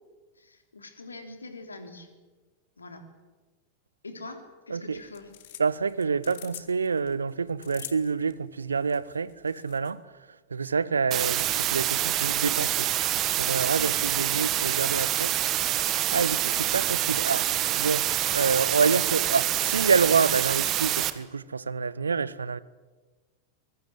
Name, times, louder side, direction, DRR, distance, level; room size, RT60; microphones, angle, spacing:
voice 1, 0.4-2.1 2.8-3.0 4.0-5.3 13.7-14.0, left 2 dB, 75° left, 3.4 m, -43 dB
sound 1, 4.9-9.9, left 14 dB, 55° left, 1.9 m, -46 dB
voice 2, 5.6-12.9 13.4-15.3 16.1-22.6, right 5 dB, 75° right, 0.8 m, -27 dB
sound 2, 11.1-21.1, right 13 dB, 35° right, 1.6 m, -26 dB
24.0 x 22.0 x 7.8 m
figure-of-eight pair, 90°, 0 cm